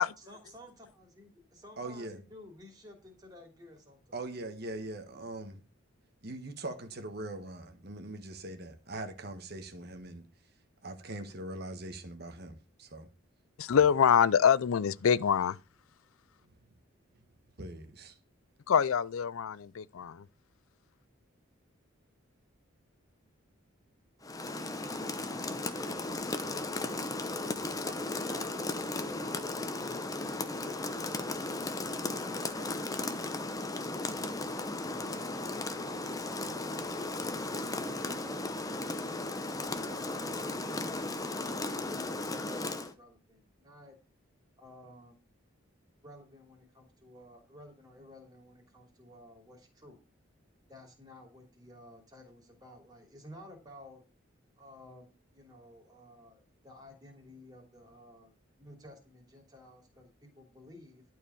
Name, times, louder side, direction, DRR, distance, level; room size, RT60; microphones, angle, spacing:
voice 1, 0.2-4.2 25.3-34.0 34.9-38.8 39.5-42.4 42.7-44.0 44.6-45.2 46.0-50.0 50.7-54.0 54.6-58.3 58.6-61.0, left 1 dB, 20° right, 3.0 m, -53 dB
voice 2, 1.8-2.2 4.1-5.6 6.2-10.3 10.8-13.1 13.7-13.8 17.6-18.2, right 2 dB, 50° right, 1.3 m, -41 dB
voice 3, 13.6-15.6 18.7-20.2, left 7 dB, 85° left, 0.4 m, -25 dB
Rain, 24.2-42.9, left 2 dB, 15° left, 0.8 m, -36 dB
12.0 x 4.7 x 6.9 m
head